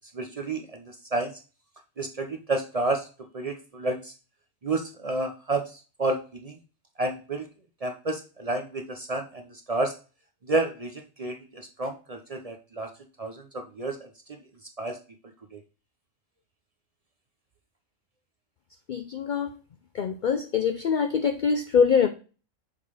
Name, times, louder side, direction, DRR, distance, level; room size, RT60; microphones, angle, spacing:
voice 1, 0.1-1.3 2.0-3.1 3.3-4.1 4.6-6.6 7.0-7.5 7.8-9.9 10.4-12.9 13.2-14.1 14.8-15.0 15.5-15.6, right 2 dB, 40° right, 4 dB, 0.5 m, -30 dB
voice 2, 18.9-19.5 19.9-22.1, left 6 dB, 90° left, 8 dB, 0.4 m, -24 dB
6.6 x 3.8 x 4.8 m, 0.35 s
omnidirectional pair, 1.4 m